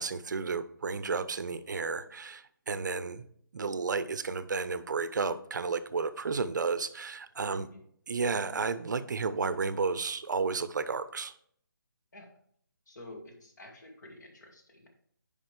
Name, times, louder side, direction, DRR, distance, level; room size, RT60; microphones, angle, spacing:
voice 1, 0.0-3.2 3.5-7.7 8.1-11.3, right 4 dB, 60° right, 13 dB, 0.6 m, -32 dB
voice 2, 12.9-14.9, left 1 dB, 55° left, 3 dB, 2.0 m, -50 dB
9.7 x 5.1 x 3.3 m, 0.64 s
figure-of-eight pair, 150°, 11 cm